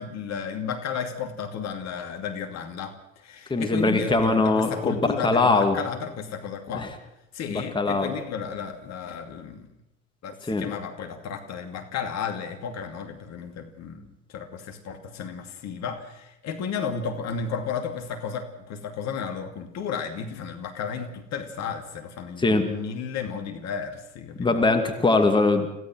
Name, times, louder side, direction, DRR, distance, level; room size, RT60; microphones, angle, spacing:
voice 1, 0.0-6.9 7.3-9.7 10.2-24.7, left 6 dB, 45° left, 6 dB, 2.6 m, -33 dB
voice 2, 3.5-5.8 6.7-6.9 7.5-8.1 10.5-10.7 22.4-22.6 24.4-25.7, left 3 dB, 15° left, 5 dB, 2.3 m, -22 dB
27.0 x 16.5 x 6.3 m, 0.84 s
figure-of-eight pair, 70°, 37 cm